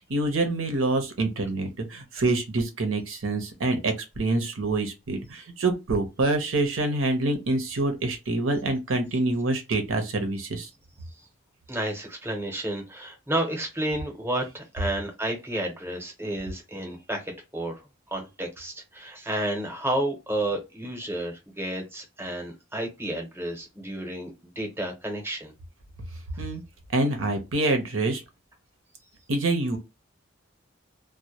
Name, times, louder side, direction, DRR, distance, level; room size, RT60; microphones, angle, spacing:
voice 1, 0.1-10.7 26.4-26.6 26.9-28.2 29.3-29.8, right 2 dB, 85° right, 0.7 m, -26 dB
voice 2, 11.7-25.5, right 1 dB, 10° right, 0.7 m, -31 dB
2.1 x 2.1 x 2.8 m
head